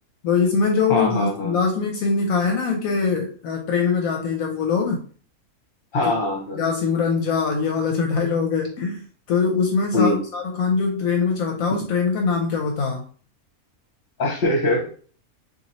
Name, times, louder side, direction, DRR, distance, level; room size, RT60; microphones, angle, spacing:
voice 1, 0.2-5.0 6.1-6.2 6.6-13.0, left 5 dB, 75° left, 2 dB, 1.0 m, -22 dB
voice 2, 0.9-1.6 5.9-6.7 9.9-10.2 14.2-14.9, left 2 dB, 40° left, 0 dB, 1.2 m, -22 dB
3.0 x 2.6 x 4.1 m, 0.43 s
omnidirectional pair, 1.5 m